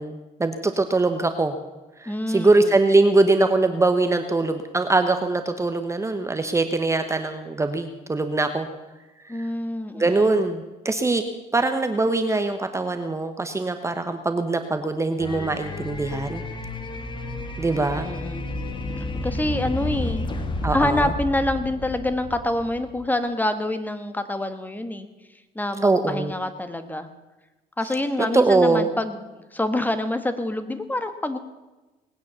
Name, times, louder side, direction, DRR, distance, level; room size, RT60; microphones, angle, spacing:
voice 1, 0.0-1.6 2.0-8.7 9.9-11.2 11.5-16.4 17.6-18.1 20.6-21.1 25.8-26.3 28.2-28.9, right 2 dB, 15° right, 8 dB, 1.0 m, -22 dB
voice 2, 2.0-2.7 9.3-10.3 17.7-18.5 19.2-20.3 20.7-25.1 25.5-27.1 27.8-31.4, left 1 dB, 10° left, 9 dB, 1.4 m, -26 dB
sound 1, 15.2-23.1, left 2 dB, 30° left, 1.8 m, -31 dB
19.5 x 9.4 x 7.0 m, 1.1 s
cardioid pair, 110°, 17 cm